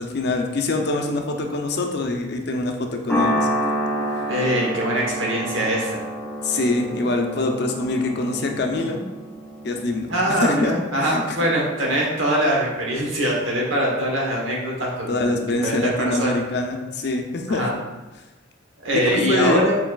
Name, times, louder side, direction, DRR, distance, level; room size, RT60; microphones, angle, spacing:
voice 1, 0.0-3.5 6.4-9.0 9.6-10.7 11.0-11.2 15.1-17.6 19.1-19.6, left 2 dB, 55° left, 3 dB, 0.5 m, -24 dB
sound 1, 3.1-11.6, equal, 5° left, 0.6 m, -29 dB
voice 2, 4.3-6.0 10.1-16.4 17.5-17.7 18.8-19.7, equal, 90° right, -3 dB, 1.1 m, -23 dB
4.6 x 3.9 x 2.3 m, 1.1 s
head